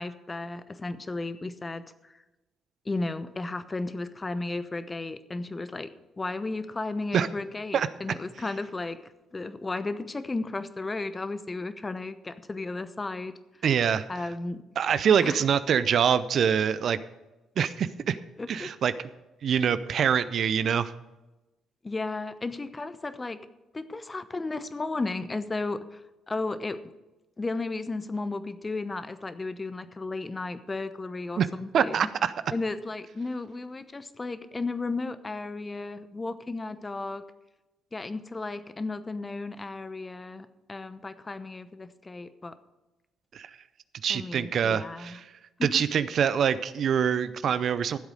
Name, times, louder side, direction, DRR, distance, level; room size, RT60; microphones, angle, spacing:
voice 1, 0.0-2.1 2.8-5.9 6.2-9.0 9.3-13.3 14.1-14.6 15.2-15.4 18.4-18.7 21.8-23.4 23.7-26.0 26.3-26.9 27.4-32.1 32.5-37.2 37.9-42.5 44.1-45.2 45.6-45.8, left 3 dB, 25° left, 13 dB, 0.9 m, -34 dB
voice 2, 13.6-14.1 14.8-17.0 17.6-18.2 18.5-18.9 19.4-20.9 31.4-31.5 31.7-32.3 43.3-43.5 44.0-45.3 45.6-48.0, right 8 dB, 55° right, 14 dB, 0.5 m, -25 dB
14.0 x 8.0 x 5.0 m, 1.1 s
hypercardioid pair, 50°, 0 cm